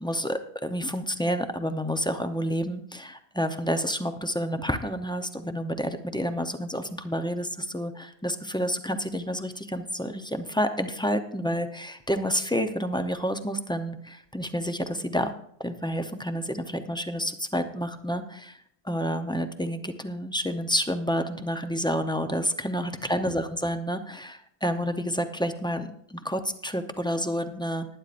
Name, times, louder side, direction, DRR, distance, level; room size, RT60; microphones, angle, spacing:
voice 1, 0.0-15.3 15.6-18.5 18.8-27.9, equal, 5° left, 7 dB, 0.5 m, -29 dB
20.0 x 9.7 x 2.5 m, 0.66 s
omnidirectional pair, 1.2 m